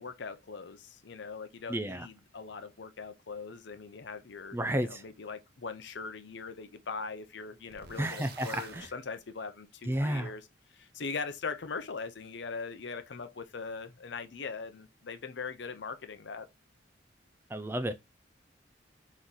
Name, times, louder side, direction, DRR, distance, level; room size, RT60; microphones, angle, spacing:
voice 1, 0.0-10.4 10.7-16.5, left 4 dB, 70° left, 0.6 m, -41 dB
voice 2, 1.7-2.1 4.5-5.0 8.0-8.9 9.9-10.3 17.5-17.9, right 1 dB, 10° right, 0.3 m, -32 dB
sound 1, 7.7-8.9, right 5 dB, 55° right, 0.7 m, -49 dB
3.8 x 3.0 x 4.0 m
head